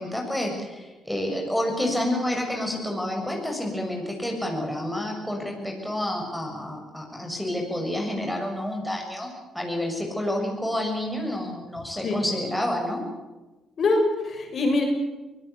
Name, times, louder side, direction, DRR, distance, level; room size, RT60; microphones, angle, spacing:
voice 1, 0.0-13.0, left 1 dB, ahead, 1 dB, 6.9 m, -29 dB
voice 2, 13.8-14.8, left 2 dB, 55° left, 2 dB, 7.1 m, -23 dB
23.5 x 18.0 x 8.4 m, 1.1 s
cardioid pair, 90°, 0 cm